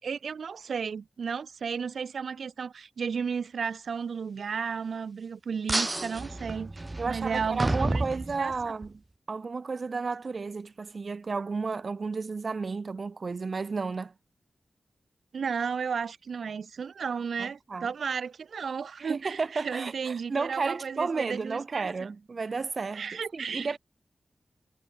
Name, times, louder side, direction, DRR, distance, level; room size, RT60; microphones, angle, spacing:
voice 1, 0.0-8.5 15.3-22.1 22.9-23.8, right 6 dB, 85° right, 2.7 m, -34 dB
sound 1, 5.7-8.9, right 2 dB, 25° right, 0.5 m, -31 dB
voice 2, 7.0-8.9 9.3-14.1 17.4-17.9 19.0-23.8, right 4 dB, 55° right, 2.7 m, -32 dB
wide cardioid pair, 85°, 0 cm